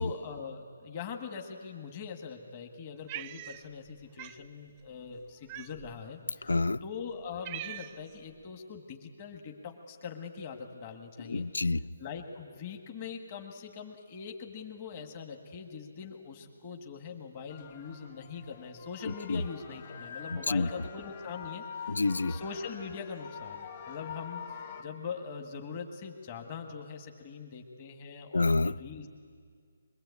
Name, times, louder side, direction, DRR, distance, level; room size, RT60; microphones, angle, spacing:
voice 1, 0.0-6.5 6.8-11.4 12.0-22.0 22.3-29.1, left 6 dB, 30° left, 4 dB, 1.6 m, -42 dB
Cat, 3.1-3.9 4.2-4.4 5.5-6.0 6.7-6.8 7.1-8.1, right 13 dB, 25° right, 0.5 m, -42 dB
voice 2, 6.4-6.8 11.2-11.9 19.1-19.4 20.3-20.7 21.9-22.4 28.3-28.8, left 3 dB, 85° left, 19 dB, 0.5 m, -28 dB
sound 1, 17.5-24.8, left 7 dB, 45° left, 3.0 m, -45 dB
22.5 x 22.0 x 8.4 m, 2.1 s
hypercardioid pair, 160°, 0 cm